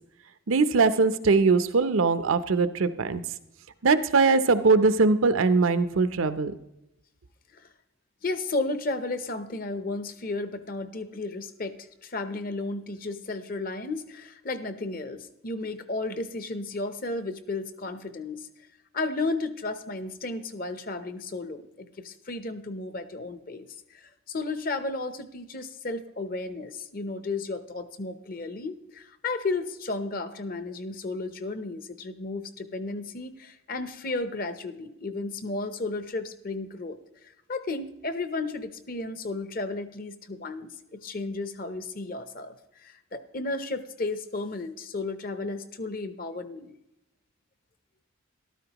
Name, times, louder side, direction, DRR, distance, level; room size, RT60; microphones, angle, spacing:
voice 1, 0.5-3.2 3.8-6.5, right 4 dB, 80° right, 12 dB, 0.6 m, -21 dB
voice 2, 8.2-18.5 18.9-37.0 37.5-46.8, left 3 dB, 45° left, 11 dB, 0.7 m, -33 dB
13.5 x 12.5 x 3.0 m, 0.86 s
head